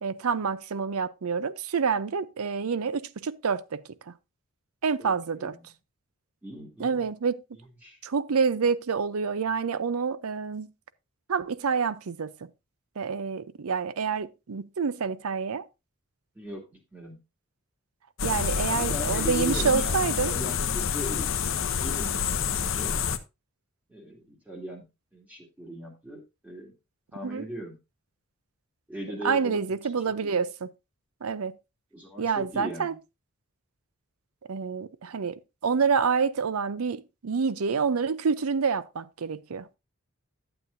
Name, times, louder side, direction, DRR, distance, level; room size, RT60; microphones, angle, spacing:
voice 1, 0.0-4.1 4.8-5.6 6.8-7.4 8.0-10.7 11.3-12.5 13.0-15.6 18.2-20.3 27.2-27.4 29.2-30.7 31.2-31.6 32.2-33.0 34.5-39.7, right 5 dB, 85° right, 0.6 m, -28 dB
voice 2, 5.0-5.6 6.4-7.1 7.8-8.0 16.3-17.2 18.7-22.9 23.9-24.9 25.1-26.7 27.1-27.8 28.9-29.7 30.2-30.4 31.9-33.0, equal, 5° right, 2.4 m, -39 dB
sound 1, 18.2-23.2, left 7 dB, 60° left, 0.8 m, -28 dB
11.5 x 7.9 x 2.6 m
head